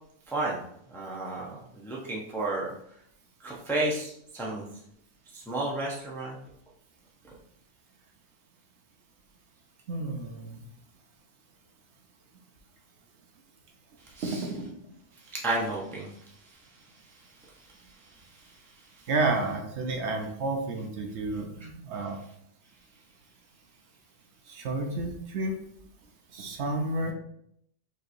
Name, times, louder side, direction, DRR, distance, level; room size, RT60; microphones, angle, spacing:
voice 1, 0.3-0.6 0.9-2.7 3.4-4.6 5.3-6.4 14.1-14.5 15.3-16.2 18.2-18.5 19.0-19.1, right 2 dB, 5° left, -4 dB, 0.5 m, -32 dB
voice 2, 9.9-10.7 14.2-14.8 19.1-22.2 24.5-25.5 26.3-27.1, right 2 dB, 70° right, 3 dB, 0.9 m, -31 dB
4.5 x 3.0 x 2.6 m, 0.72 s
omnidirectional pair, 1.3 m